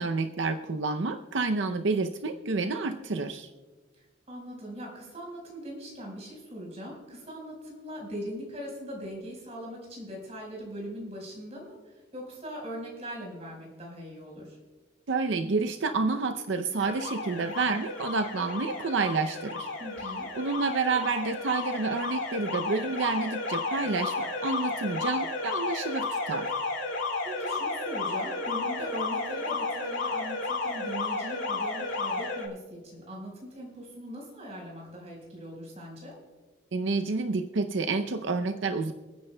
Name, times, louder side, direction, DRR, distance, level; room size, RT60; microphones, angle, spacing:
voice 1, 0.0-3.5 15.1-19.7 20.4-26.6 36.7-38.9, right 4 dB, 75° right, 7 dB, 0.6 m, -29 dB
voice 2, 4.3-11.8 12.1-14.6 19.8-20.3 27.2-36.1, equal, 35° right, -1 dB, 4.6 m, -40 dB
Alarm, 16.8-32.5, left 3 dB, 80° left, 2.4 m, -33 dB
28.0 x 9.7 x 2.2 m, 1.3 s
head